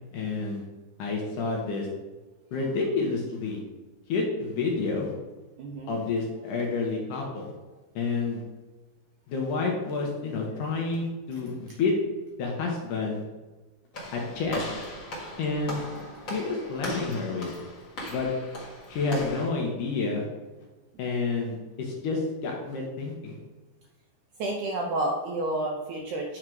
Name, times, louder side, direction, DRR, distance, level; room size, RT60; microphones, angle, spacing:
voice 1, 0.1-0.6 1.0-1.9 2.5-3.6 4.1-5.1 5.9-7.5 8.0-8.4 9.3-11.9 12.4-13.2 14.1-14.6 15.4-15.8 16.3-17.5 18.1-18.3 18.9-20.2 21.0-23.4, left 4 dB, 70° left, -1 dB, 2.2 m, -29 dB
voice 2, 5.6-6.0 24.4-26.4, right 1 dB, 75° right, -1 dB, 1.8 m, -30 dB
Walk footsteps / Slam, 13.9-19.5, left 1 dB, 45° left, 1.7 m, -38 dB
8.9 x 3.7 x 4.6 m, 1.2 s
omnidirectional pair, 4.4 m